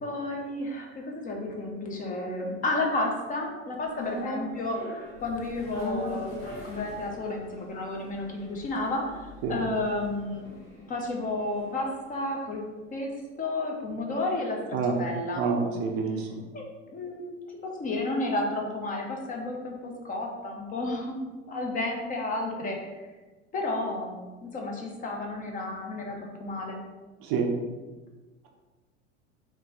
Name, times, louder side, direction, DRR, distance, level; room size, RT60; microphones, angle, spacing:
voice 1, 0.0-4.8 5.2-6.4 6.6-9.2 9.5-12.6 12.9-13.1 13.4-15.4 16.5-16.6 16.9-17.4 17.6-22.8 23.5-26.8, left 2 dB, 20° left, 1 dB, 0.6 m, -32 dB
sound 1, 3.9-12.2 12.5-12.6, left 1 dB, 45° left, 1.4 m, -40 dB
voice 2, 15.4-16.4 27.2-27.5, right 5 dB, 40° right, 2 dB, 0.5 m, -27 dB
3.7 x 2.5 x 3.7 m, 1.3 s
figure-of-eight pair, 75°, 37 cm